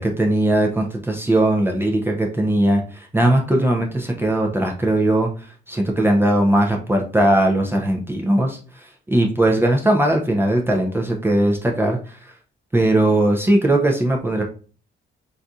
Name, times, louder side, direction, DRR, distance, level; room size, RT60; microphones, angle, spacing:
voice 1, 0.0-5.3 5.7-12.2 12.7-14.4, right 1 dB, 10° right, 1 dB, 0.6 m, -19 dB
4.0 x 2.6 x 2.3 m, 0.39 s
cardioid pair, 90°, 20 cm